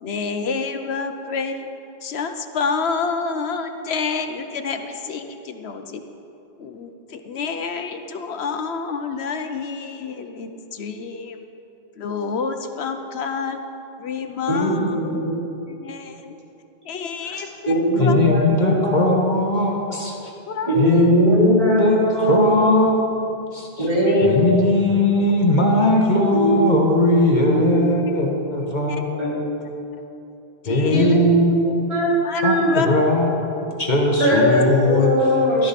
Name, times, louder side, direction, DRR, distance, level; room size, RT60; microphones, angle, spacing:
voice 1, 0.0-1.7 2.0-6.0 6.6-11.4 12.0-13.6 14.0-15.2 15.8-16.4 16.8-18.2 20.5-20.8 24.1-24.3 28.9-29.0 30.6-31.1 32.2-32.4 32.7-32.9 34.2-34.4, left 5 dB, 85° left, 7 dB, 1.1 m, -28 dB
voice 2, 14.5-15.3 17.2-19.3 20.6-23.0 23.8-24.6 26.3-26.6 27.5-27.7 29.2-29.4 30.8-31.5 31.9-32.7 34.2-35.7, equal, 35° right, -8 dB, 3.6 m, -20 dB
voice 3, 18.0-20.3 20.7-22.0 22.3-23.0 23.5-23.9 24.2-29.1 30.6-31.7 32.4-33.3 33.8-35.1 35.6-35.7, left 2 dB, 50° left, 0 dB, 1.4 m, -19 dB
14.5 x 13.0 x 4.2 m, 2.8 s
omnidirectional pair, 1.0 m